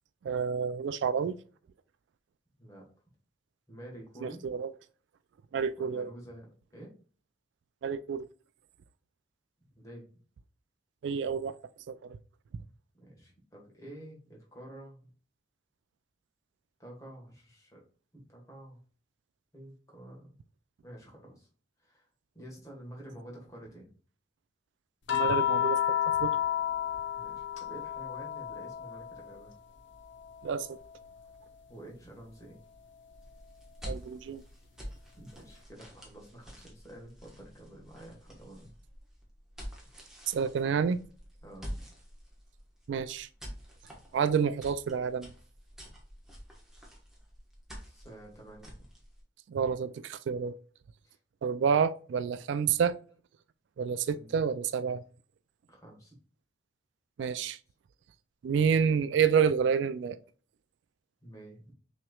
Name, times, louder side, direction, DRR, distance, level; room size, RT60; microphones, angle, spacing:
voice 1, 0.2-1.4 4.2-4.7 5.5-6.1 7.8-8.3 11.0-11.5 11.9-12.2 25.1-26.3 30.4-30.8 33.8-34.4 40.3-41.0 42.9-43.3 44.1-45.3 49.5-50.5 51.4-53.0 53.8-55.0 57.2-57.6 58.4-60.2, right 6 dB, 75° right, 0.3 m, -29 dB
voice 2, 3.7-4.4 5.8-6.5 6.7-6.9 9.7-10.0 12.9-15.1 16.8-17.8 18.1-18.8 19.5-20.3 20.8-21.5 21.8-22.1 22.3-23.9 27.1-29.5 31.7-32.6 35.2-38.7 41.4-41.9 47.8-48.7 51.0-51.2 54.1-54.4 55.7-56.1 61.2-61.6, right 1 dB, 20° left, 1.4 m, -49 dB
sound 1, 25.1-29.6 29.9-31.6 33.1-33.2, left 10 dB, 80° left, 0.6 m, -32 dB
sound 2, 33.1-49.2, equal, 5° right, 1.1 m, -48 dB
5.8 x 3.1 x 2.3 m
head